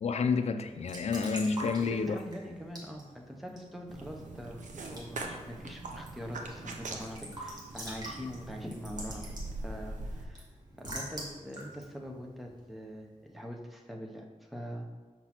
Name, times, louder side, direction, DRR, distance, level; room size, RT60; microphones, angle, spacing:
voice 1, 0.0-2.2, left 5 dB, 60° left, 8 dB, 0.4 m, -29 dB
Raindrop / Drip / Trickle dribble, 0.6-13.1, right 1 dB, 30° right, 1.4 m, -47 dB
voice 2, 1.9-9.2 9.6-10.5 10.8-14.9, equal, ahead, 1 dB, 0.6 m, -43 dB
sound 1, 3.9-10.3, right 2 dB, 75° right, 0.7 m, -42 dB
6.0 x 5.8 x 2.9 m, 1.4 s
wide cardioid pair, 165°, 13 cm